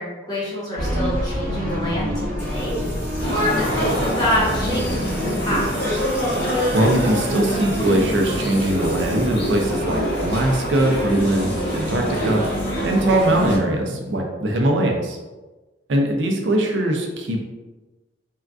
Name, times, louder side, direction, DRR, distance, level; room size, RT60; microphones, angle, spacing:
voice 1, 0.0-2.8 3.3-6.0, equal, 20° left, -7 dB, 1.0 m, -26 dB
sound 1, 0.8-6.3, equal, 50° right, 1.0 m, -28 dB
Music / Water tap faucet / Trickle dribble, 2.4-14.2, right 1 dB, 10° right, 1.0 m, -34 dB
sound 2, 3.2-13.6, equal, 65° left, 1.1 m, -25 dB
voice 2, 6.7-12.4 12.8-15.2 15.9-17.5, right 1 dB, 75° right, 1 dB, 0.5 m, -21 dB
3.6 x 2.3 x 2.3 m, 1.2 s
head